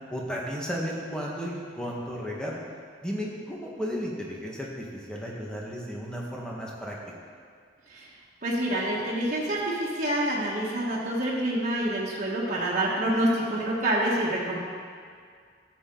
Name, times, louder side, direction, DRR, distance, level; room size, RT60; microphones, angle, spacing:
voice 1, 0.1-2.6 3.0-7.0, equal, 5° left, -4 dB, 1.5 m, -34 dB
voice 2, 8.4-14.6, right 1 dB, 40° right, -7 dB, 1.6 m, -27 dB
13.0 x 7.4 x 3.9 m, 2.1 s
head